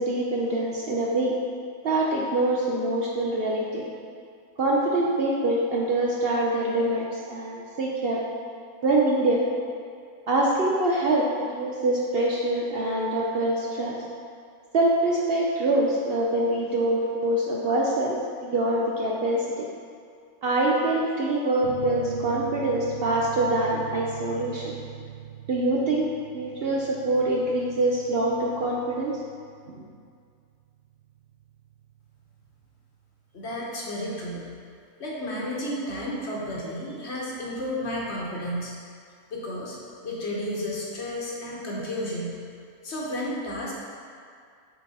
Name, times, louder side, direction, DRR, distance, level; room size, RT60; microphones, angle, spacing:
voice 1, 0.0-1.4 1.8-3.9 4.6-8.2 8.8-9.4 10.3-14.0 14.7-19.7 20.4-24.7 25.5-26.1 26.3-29.2 29.7-29.8, right 1 dB, 55° right, -3 dB, 0.7 m, -24 dB
sound 1, 21.6-32.8, right 7 dB, 70° right, 1.5 m, -41 dB
voice 2, 33.3-34.5 35.0-38.7 39.3-39.8 40.0-42.3 42.8-43.7, left 1 dB, 55° left, -4 dB, 1.3 m, -32 dB
7.1 x 4.3 x 4.2 m, 2.2 s
omnidirectional pair, 1.5 m